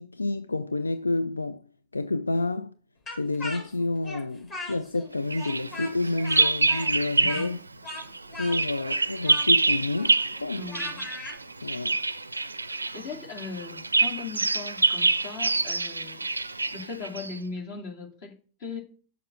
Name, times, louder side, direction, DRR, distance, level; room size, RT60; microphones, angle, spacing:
voice 1, 0.0-1.6 1.9-2.7 3.2-7.6 8.4-10.7 11.6-12.1, left 2 dB, 80° left, 0.3 m, -29 dB
Speech, 3.1-5.1 5.3-11.4, left 2 dB, 35° left, 3.8 m, -39 dB
Bird vocalization bird call bird song, 5.3-7.6 7.9-17.4, right 3 dB, 80° right, 0.4 m, -26 dB
voice 2, 7.2-7.5 10.5-11.0 12.9-18.8, left 5 dB, 50° left, 2.3 m, -39 dB
6.7 x 5.8 x 6.1 m
figure-of-eight pair, 90°, 0 cm